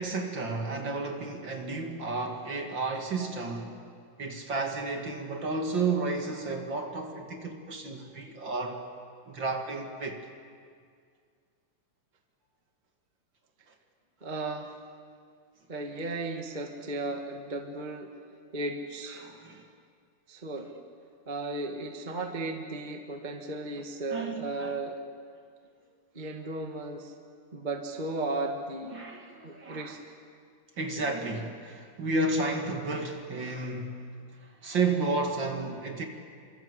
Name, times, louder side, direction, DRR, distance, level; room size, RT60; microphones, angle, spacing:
voice 1, 0.0-3.8 4.2-8.8 9.3-10.2 19.2-19.7 24.1-24.7 28.9-29.9 30.8-34.1 34.6-36.1, right 3 dB, 40° right, 3 dB, 2.6 m, -32 dB
voice 2, 14.2-14.7 15.7-18.1 18.5-19.2 20.3-20.7 21.3-25.0 26.1-27.1 27.5-29.0 29.4-30.0, right 2 dB, 20° right, 3 dB, 1.5 m, -35 dB
28.0 x 25.5 x 8.2 m, 2.1 s
omnidirectional pair, 3.6 m